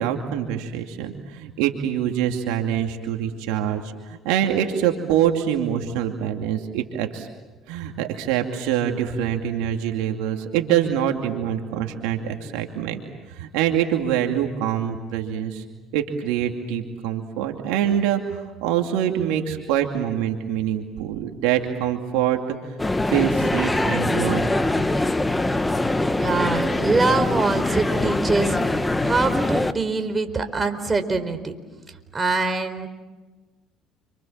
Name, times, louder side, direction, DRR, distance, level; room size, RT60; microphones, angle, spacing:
voice 1, 0.0-7.3 7.7-13.0 13.4-15.6 15.9-22.6 23.1-24.5, right 10 dB, 80° right, 4 dB, 2.5 m, -25 dB
sound 1, 22.8-29.7, left 2 dB, 15° left, 1.4 m, -23 dB
voice 2, 26.2-31.5 32.1-32.9, right 3 dB, 25° right, 6 dB, 4.5 m, -24 dB
30.0 x 25.5 x 7.5 m, 1.2 s
hypercardioid pair, 65°, 0 cm